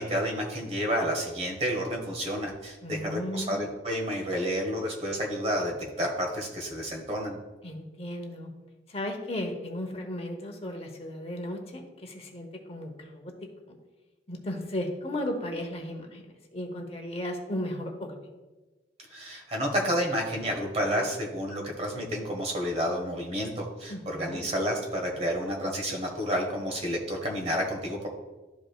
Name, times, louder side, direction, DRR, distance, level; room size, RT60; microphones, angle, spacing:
voice 1, 0.0-7.4 19.1-28.1, equal, 35° right, 0 dB, 1.4 m, -30 dB
voice 2, 2.8-3.6 7.6-8.5 8.9-13.3 13.7-13.8 14.3-16.3 16.5-18.2 23.9-24.5, left 1 dB, 30° left, 3 dB, 0.9 m, -35 dB
12.5 x 4.9 x 2.4 m, 1.2 s
head